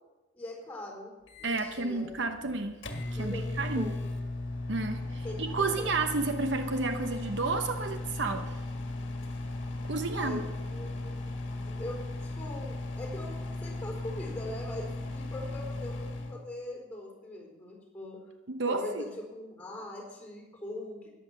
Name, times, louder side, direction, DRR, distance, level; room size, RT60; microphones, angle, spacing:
voice 1, 0.3-2.1 3.1-4.2 5.2-5.9 10.1-18.2 18.7-21.1, left 1 dB, 10° left, 0 dB, 4.3 m, -42 dB
Microwave oven, 1.3-16.4, left 2 dB, 60° left, 1.7 m, -37 dB
voice 2, 1.4-2.8 3.1-3.9 4.7-8.6 9.8-10.4 18.5-19.0, right 3 dB, 60° right, 7 dB, 0.9 m, -31 dB
14.0 x 10.5 x 6.9 m, 1.1 s
head